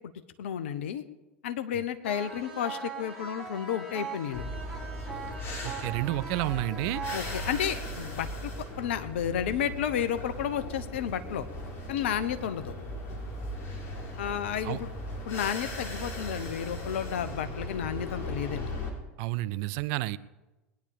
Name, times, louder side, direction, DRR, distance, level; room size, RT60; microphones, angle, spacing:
voice 1, 0.4-1.0 1.4-4.6 7.1-8.5 8.8-11.4 11.9-12.7 14.2-14.9 15.3-18.7, left 9 dB, 70° left, 11 dB, 1.0 m, -32 dB
sound 1, 2.0-8.0, right 5 dB, 10° left, 5.6 m, -40 dB
sound 2, 4.3-18.9, equal, 40° left, 3.8 m, -38 dB
voice 2, 5.6-7.0 14.6-14.8 19.2-20.2, right 17 dB, 55° right, 17 dB, 0.6 m, -30 dB
20.5 x 10.0 x 5.1 m, 1.1 s
figure-of-eight pair, 80°, 7 cm